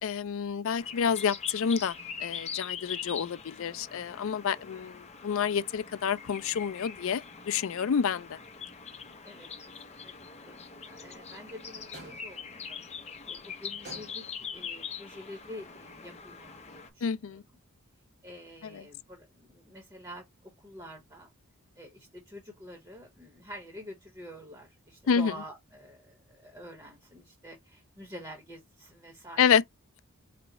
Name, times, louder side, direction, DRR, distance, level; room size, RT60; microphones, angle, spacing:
voice 1, 0.0-8.4 17.0-17.4 18.6-18.8 25.1-25.3 29.4-29.6, left 7 dB, 65° left, 0.4 m, -28 dB
sound 1, 0.8-16.9, left 6 dB, 30° left, 0.7 m, -42 dB
voice 2, 10.4-12.8 13.3-14.3 14.5-17.4 18.2-21.3 21.8-29.6, equal, 15° right, 1.1 m, -47 dB
sound 2, 11.9-12.5 13.8-14.5, right 2 dB, 50° right, 2.0 m, -48 dB
5.0 x 2.3 x 2.9 m
head